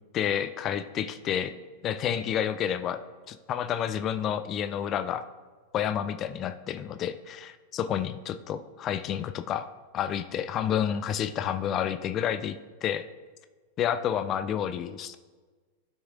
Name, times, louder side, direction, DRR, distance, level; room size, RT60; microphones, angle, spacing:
voice 1, 0.1-1.5 1.8-3.0 3.3-5.2 5.7-9.7 9.9-13.0 13.8-15.2, left 9 dB, 30° left, 11 dB, 0.3 m, -30 dB
12.5 x 6.2 x 2.4 m, 1.4 s
figure-of-eight pair, 90°, 0 cm